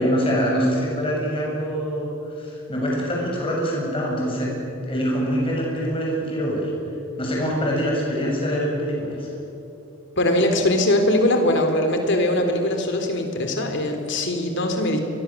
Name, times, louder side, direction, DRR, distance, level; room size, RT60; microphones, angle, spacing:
voice 1, 0.0-2.1 2.3-4.5 4.8-6.7 7.2-9.3, equal, 25° left, -3 dB, 7.5 m, -24 dB
voice 2, 10.2-15.0, left 1 dB, 60° left, 5 dB, 3.8 m, -21 dB
29.5 x 23.0 x 7.6 m, 2.9 s
head